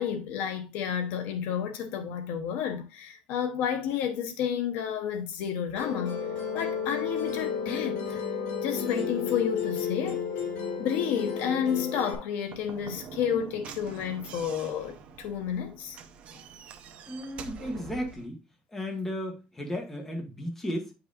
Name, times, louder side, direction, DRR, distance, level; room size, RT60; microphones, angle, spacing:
voice 1, 0.0-6.3 6.5-8.2 8.6-10.3 10.8-16.0, left 8 dB, 65° left, 1.0 m, -31 dB
Musical instrument, 5.8-12.2, left 6 dB, 85° left, 2.9 m, -32 dB
Slam / Knock, 12.4-18.3, right 6 dB, 40° right, 0.8 m, -45 dB
voice 2, 17.0-18.4 18.7-20.9, equal, 10° left, 1.5 m, -34 dB
9.2 x 5.4 x 2.6 m
cardioid pair, 170°, 3 cm